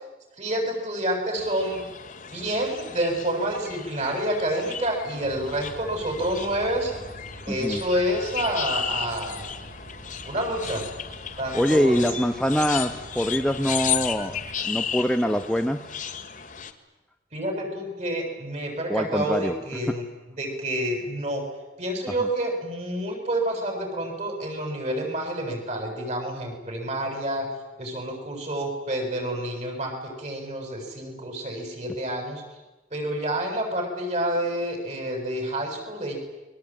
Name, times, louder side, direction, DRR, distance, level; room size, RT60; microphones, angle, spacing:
voice 1, 0.4-1.8 2.2-6.9 7.5-9.4 10.2-10.9 11.4-12.0 17.3-20.0 20.3-21.4 21.8-27.5 27.8-29.9 30.2-32.4 32.9-36.2, right 1 dB, 40° right, 4 dB, 7.7 m, -28 dB
sound 1, 1.4-16.7, left 8 dB, 45° left, 2.1 m, -34 dB
sound 2, 5.2-14.6, right 1 dB, 60° right, 4.3 m, -45 dB
voice 2, 7.5-7.8 11.5-15.9 18.9-19.5 19.9-20.0, equal, 5° left, 6 dB, 1.0 m, -24 dB
29.5 x 22.5 x 9.0 m, 1.1 s
head